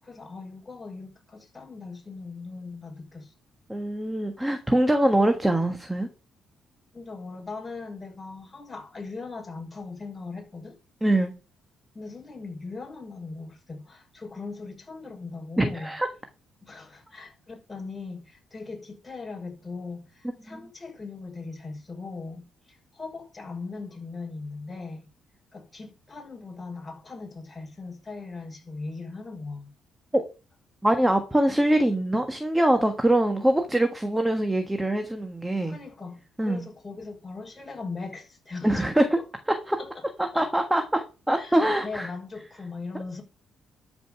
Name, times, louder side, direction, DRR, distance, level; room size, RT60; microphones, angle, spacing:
voice 1, 0.0-3.3 6.9-10.8 11.9-15.9 16.6-25.1 25.5-29.7 35.6-39.1 39.8-40.1 40.3-40.5 41.4-43.2, left 3 dB, 20° left, 5.8 m, -39 dB
voice 2, 3.7-6.1 11.0-11.3 15.6-16.1 20.5-20.6 30.1-30.2 30.8-35.8 36.4-36.7 38.6-39.0 39.5-39.8 40.2-42.1, right 1 dB, 10° right, 1.4 m, -23 dB
13.0 x 5.2 x 5.9 m
cardioid pair, 90°, 0 cm